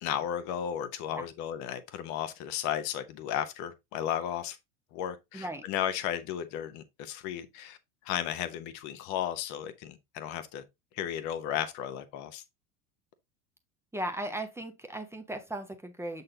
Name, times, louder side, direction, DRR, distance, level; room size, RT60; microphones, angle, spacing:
voice 1, 0.0-4.6 4.9-7.8 8.0-10.6 11.0-12.4, left 10 dB, 40° left, 1.0 m, -34 dB
voice 2, 5.3-5.6 13.9-16.2, right 1 dB, 5° right, 0.9 m, -37 dB
7.7 x 4.1 x 3.8 m
figure-of-eight pair, 75°, 42 cm